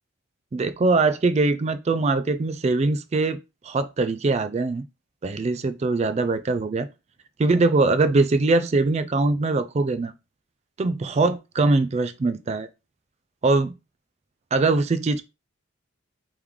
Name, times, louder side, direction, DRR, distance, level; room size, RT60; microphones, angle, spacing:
voice 1, 0.5-3.4 3.6-4.8 5.2-6.9 7.4-10.1 10.8-12.7 13.4-13.7 14.5-15.2, right 3 dB, 30° right, 0.3 m, -22 dB
3.5 x 3.1 x 3.6 m
head